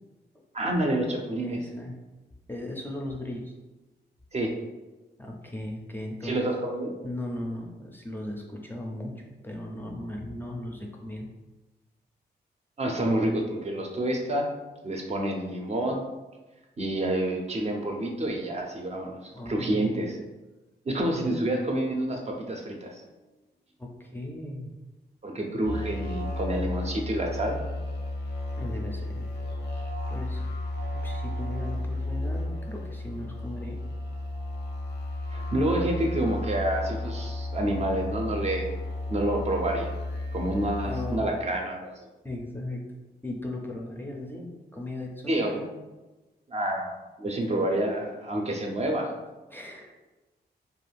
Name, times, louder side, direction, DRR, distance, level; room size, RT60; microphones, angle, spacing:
voice 1, 0.5-1.6 4.3-4.5 6.2-6.9 12.8-14.5 14.8-16.0 16.8-20.2 20.9-23.0 25.2-27.6 35.3-38.7 39.1-39.9 40.3-41.9 45.3-45.6 46.5-46.9 47.2-49.1, right 1 dB, 40° right, 1 dB, 0.5 m, -28 dB
voice 2, 1.4-1.9 2.5-3.5 5.2-6.5 7.0-9.1 9.4-11.3 19.3-20.1 23.8-24.7 28.6-29.2 30.1-30.4 31.0-33.8 40.8-41.2 42.2-42.8 43.2-45.6 49.5-49.9, left 1 dB, 10° left, -1 dB, 0.4 m, -37 dB
sound 1, 25.6-41.2, left 1 dB, 90° left, 0.6 m, -33 dB
2.5 x 2.3 x 3.3 m, 1.1 s
cardioid pair, 75°, 18 cm